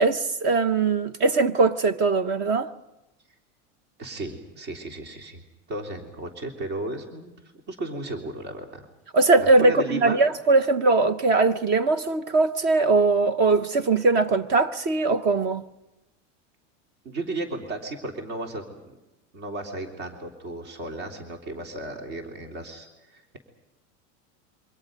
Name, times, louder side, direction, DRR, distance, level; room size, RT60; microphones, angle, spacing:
voice 1, 0.0-2.7 9.1-15.6, right 3 dB, 30° right, 0.8 m, -21 dB
voice 2, 4.0-5.4 5.7-7.3 7.7-8.8 9.4-10.2 17.1-18.9 19.3-23.4, right 2 dB, 45° right, 3.5 m, -34 dB
28.5 x 25.0 x 5.3 m
supercardioid pair, 165°, 37 cm